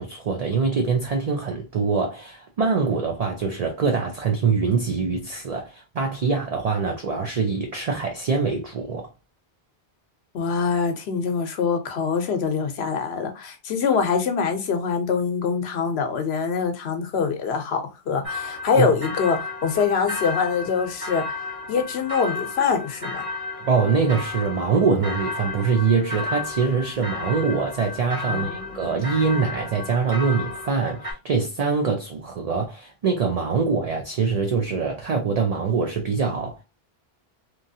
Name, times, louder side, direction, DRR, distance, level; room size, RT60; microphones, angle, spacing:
voice 1, 0.0-9.1 18.7-18.9 23.6-36.6, right 5 dB, 50° right, 0.5 m, -24 dB
voice 2, 10.3-21.3 21.7-23.2 28.3-28.8, left 6 dB, 85° left, 0.9 m, -24 dB
sound 1, 18.2-31.1, left 3 dB, 35° right, 1.3 m, -33 dB
3.0 x 2.4 x 2.6 m
omnidirectional pair, 1.0 m